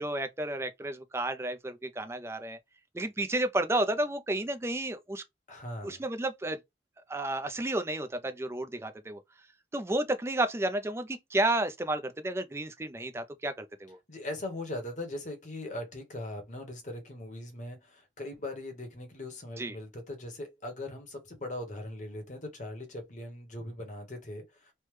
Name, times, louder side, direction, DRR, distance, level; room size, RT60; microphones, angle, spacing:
voice 1, 0.0-2.6 2.9-5.2 5.8-6.6 7.1-9.2 9.7-14.0 19.6-19.7, right 1 dB, 15° right, 0.3 m, -31 dB
voice 2, 5.5-6.0 14.1-24.7, left 1 dB, 40° left, 0.9 m, -40 dB
3.3 x 2.1 x 3.1 m
head